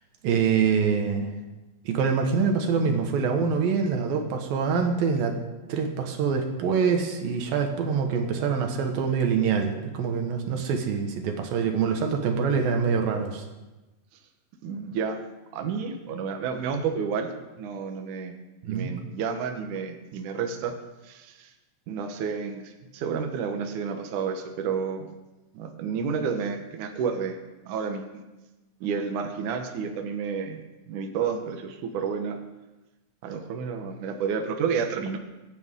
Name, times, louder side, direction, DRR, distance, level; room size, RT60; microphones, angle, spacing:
voice 1, 0.2-1.3 1.8-5.4 5.7-13.4 18.6-18.9, right 6 dB, 85° right, 4 dB, 3.2 m, -25 dB
voice 2, 14.6-15.2 15.5-18.4 18.6-20.7 21.0-21.5 21.9-25.1 25.5-27.4 27.7-28.2 28.8-30.6 30.9-32.4 33.2-35.2, right 6 dB, 65° right, 4 dB, 2.5 m, -30 dB
25.0 x 9.6 x 3.7 m, 1.1 s
omnidirectional pair, 4.1 m